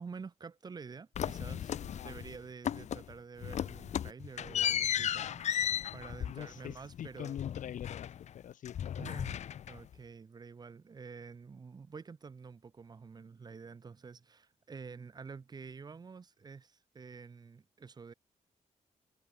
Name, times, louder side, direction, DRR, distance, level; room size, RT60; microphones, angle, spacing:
voice 1, 0.0-5.4 5.9-7.4 9.0-18.1, right 5 dB, 30° right, 1.9 m, -49 dB
sound 1, 1.1-2.4 2.6-3.1 3.4-8.4 8.6-9.9, left 9 dB, 60° left, 1.1 m, -35 dB
voice 2, 6.3-9.1, left 10 dB, 80° left, 3.4 m, -44 dB
wide cardioid pair, 155°, 13 cm